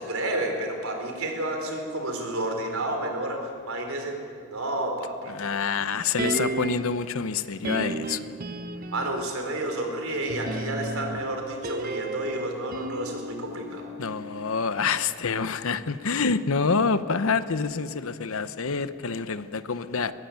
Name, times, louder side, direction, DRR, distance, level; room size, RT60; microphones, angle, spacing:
voice 1, 0.0-4.1 4.5-5.3 8.9-13.9, right 1 dB, 70° right, 3 dB, 4.2 m, -30 dB
voice 2, 5.3-8.3 14.0-20.1, left 5 dB, 70° left, 13 dB, 0.8 m, -27 dB
sound 1, 6.2-7.0 7.6-9.3 10.3-14.5 14.8-14.9, right 2 dB, 40° right, 1.0 m, -33 dB
22.0 x 16.0 x 9.3 m, 2.4 s
head